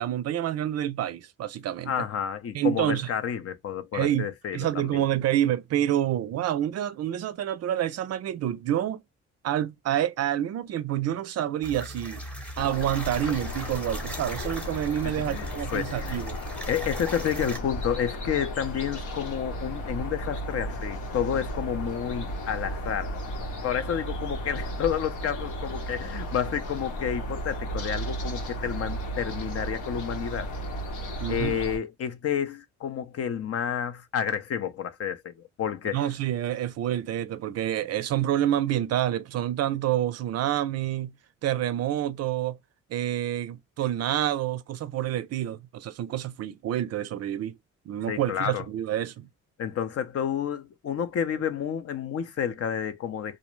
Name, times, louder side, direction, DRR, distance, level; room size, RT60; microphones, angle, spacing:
voice 1, 0.0-1.9 2.5-3.1 3.9-9.0 9.4-12.2 12.6-16.4 31.2-31.6 35.9-41.1 41.4-42.6 42.9-47.5 47.9-49.3, right 11 dB, 55° right, 0.4 m, -28 dB
voice 2, 1.9-5.0 15.0-16.2 16.7-23.2 23.6-30.5 31.3-36.1 48.1-48.7 49.6-53.4, left 8 dB, 55° left, 0.6 m, -30 dB
sound 1, 11.6-17.6, equal, 5° left, 0.8 m, -39 dB
sound 2, 12.6-31.8, equal, 80° left, 1.0 m, -34 dB
2.5 x 2.0 x 3.0 m
cardioid pair, 90°, 30 cm